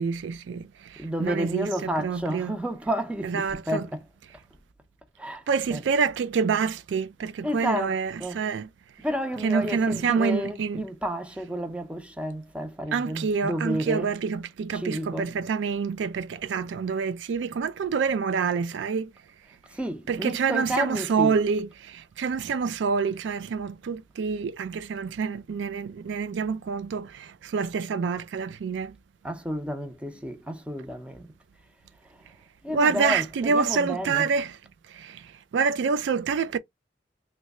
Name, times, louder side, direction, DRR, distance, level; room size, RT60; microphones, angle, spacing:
voice 1, 0.0-2.5 3.2-3.8 5.5-8.7 9.4-10.8 12.9-19.1 20.1-29.0 32.7-34.5 34.9-36.6, right 5 dB, 75° right, 0.3 m, -27 dB
voice 2, 1.0-4.1 5.2-5.8 7.4-8.5 9.0-14.2 14.7-15.3 19.7-21.4 29.2-31.3 32.1-32.2 32.6-34.3, equal, 5° right, 0.6 m, -31 dB
3.1 x 2.2 x 3.5 m
head